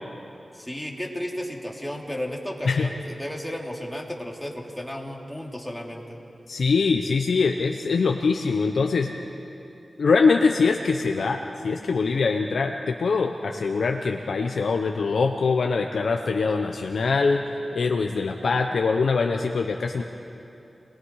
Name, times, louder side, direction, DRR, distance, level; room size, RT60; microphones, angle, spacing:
voice 1, 0.5-6.2, equal, 5° left, -1 dB, 3.4 m, -33 dB
voice 2, 6.5-9.1 10.0-17.5 17.7-20.0, left 4 dB, 85° left, 3 dB, 0.9 m, -23 dB
30.0 x 20.0 x 4.9 m, 2.7 s
cardioid pair, 45°, 0 cm